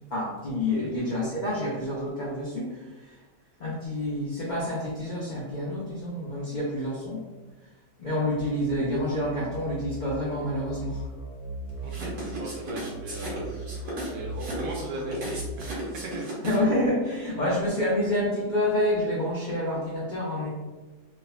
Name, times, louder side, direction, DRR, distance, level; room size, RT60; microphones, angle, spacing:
voice 1, 0.1-3.2 3.6-7.2 8.0-11.0 16.4-20.5, left 1 dB, 75° left, -7 dB, 0.4 m, -28 dB
sound 1, 8.4-15.7, right 2 dB, 45° left, 0.7 m, -39 dB
voice 2, 11.8-13.4 14.0-16.3, right 1 dB, 65° right, 0 dB, 0.8 m, -38 dB
sound 2, 11.9-16.8, right 1 dB, 90° right, 1.4 m, -35 dB
3.4 x 2.1 x 2.3 m, 1.2 s
omnidirectional pair, 1.6 m